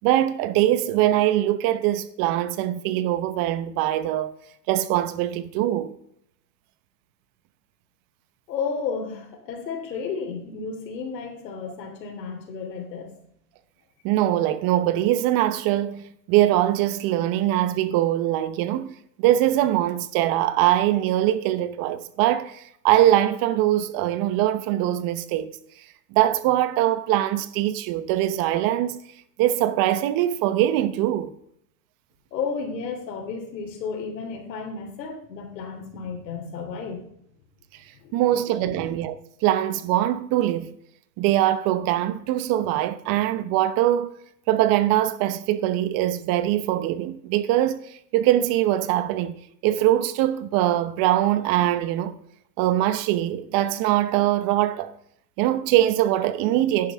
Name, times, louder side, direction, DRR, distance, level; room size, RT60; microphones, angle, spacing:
voice 1, 0.0-4.3 4.7-5.9 14.0-25.5 26.1-29.0 29.4-31.3 38.1-40.7 41.2-44.1 44.5-49.4 49.6-52.1 52.6-54.9 55.4-56.9, right 13 dB, 45° right, 1.0 m, -22 dB
voice 2, 8.5-13.1 32.3-37.1 37.9-38.2 38.6-38.9, left 5 dB, 80° left, 3.2 m, -32 dB
11.0 x 10.5 x 3.6 m
supercardioid pair, 125°, 49 cm